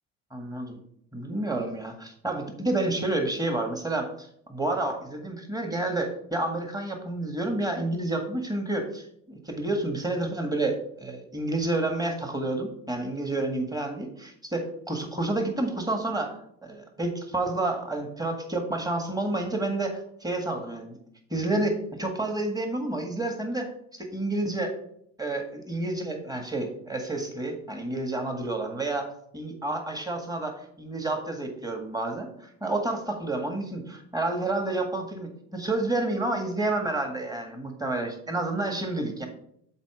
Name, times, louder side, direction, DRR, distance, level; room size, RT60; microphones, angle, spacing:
voice 1, 0.3-0.8 1.1-21.0 21.3-24.7 25.2-39.3, right 2 dB, 10° right, 4 dB, 1.8 m, -30 dB
7.5 x 4.0 x 6.1 m, 0.69 s
supercardioid pair, 80°, 33 cm